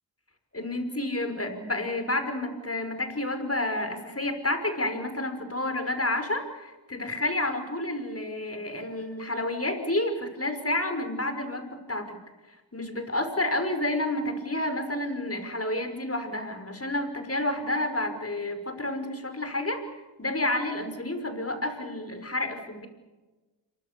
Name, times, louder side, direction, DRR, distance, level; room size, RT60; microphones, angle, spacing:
voice 1, 0.5-12.2 12.5-19.8 20.2-22.9, left 1 dB, 30° left, 7 dB, 5.7 m, -30 dB
27.5 x 24.0 x 6.9 m, 1.2 s
cardioid pair, 45°, 44 cm